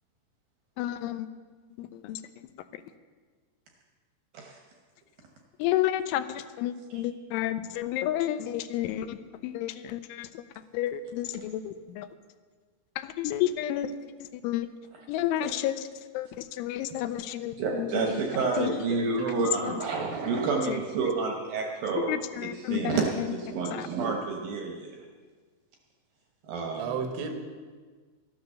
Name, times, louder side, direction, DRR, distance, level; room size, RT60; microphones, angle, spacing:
voice 1, 0.8-1.3 1.8-2.2 5.6-10.4 10.7-12.1 13.0-13.9 14.3-14.7 15.1-15.9 16.1-18.2 18.6-18.9 19.4-19.8 20.7-20.8 22.0-23.3 23.7-23.9, left 12 dB, 85° left, 11 dB, 3.1 m, -31 dB
voice 2, 17.6-25.0 26.5-27.0, right 4 dB, 70° right, 1 dB, 2.2 m, -29 dB
voice 3, 18.9-19.8 26.8-27.3, right 6 dB, 90° right, 5 dB, 3.9 m, -34 dB
13.5 x 10.5 x 6.7 m, 1.5 s
omnidirectional pair, 5.5 m